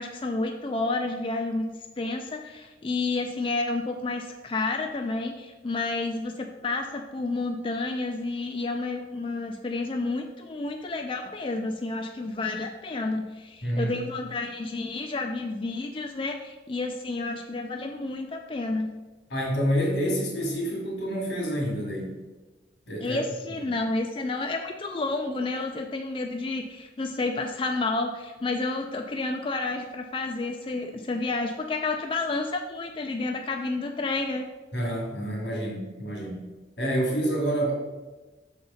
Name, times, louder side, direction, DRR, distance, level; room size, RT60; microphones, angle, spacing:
voice 1, 0.0-1.7 2.0-18.9 23.0-34.5, left 3 dB, 30° left, 4 dB, 0.3 m, -30 dB
voice 2, 13.6-13.9 19.3-22.1 22.9-23.2 34.7-36.5 36.8-37.7, equal, 80° left, -1 dB, 2.3 m, -28 dB
6.6 x 4.0 x 5.5 m, 1.2 s
head